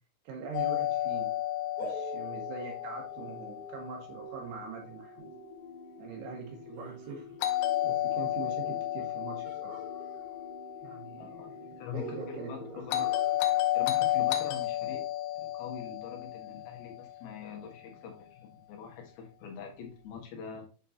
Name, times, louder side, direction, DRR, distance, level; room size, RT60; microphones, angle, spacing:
voice 1, 0.3-1.3 1.8-5.3 6.0-7.3 7.8-9.8 10.8-13.2, right 5 dB, 85° right, 1 dB, 3.7 m, -43 dB
Doorbell, 0.5-4.5 7.4-11.6 12.9-17.3, left 14 dB, 85° left, 2.9 m, -32 dB
sound 1, 1.8-7.2 9.4-10.9 11.2-11.3 11.9-14.1, right 1 dB, 30° right, 3.3 m, -47 dB
sound 2, 5.2-13.2, left 2 dB, 50° left, 2.8 m, -49 dB
voice 2, 11.2-13.0 13.7-15.1 15.4-20.7, left 6 dB, 70° left, 2 dB, 3.3 m, -44 dB
8.3 x 5.4 x 2.8 m, 0.35 s
omnidirectional pair, 4.7 m